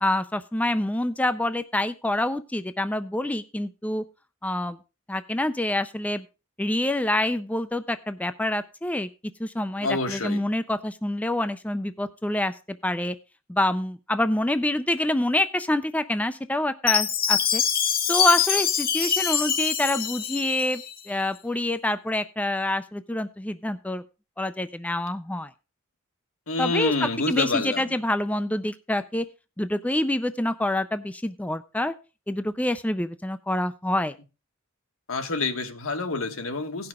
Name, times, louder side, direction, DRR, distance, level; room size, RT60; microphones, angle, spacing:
voice 1, 0.0-4.0 4.4-4.8 5.1-6.2 6.6-9.1 9.4-12.5 12.8-13.1 13.5-17.6 18.1-24.0 24.4-25.5 26.6-29.2 29.6-31.9 32.3-34.1, left 1 dB, 5° left, 0.4 m, -26 dB
voice 2, 9.8-10.4 26.5-27.9 35.1-36.9, left 3 dB, 75° left, 1.4 m, -27 dB
Chime, 16.9-21.0, left 8 dB, 45° left, 1.0 m, -24 dB
17.5 x 5.9 x 3.6 m
head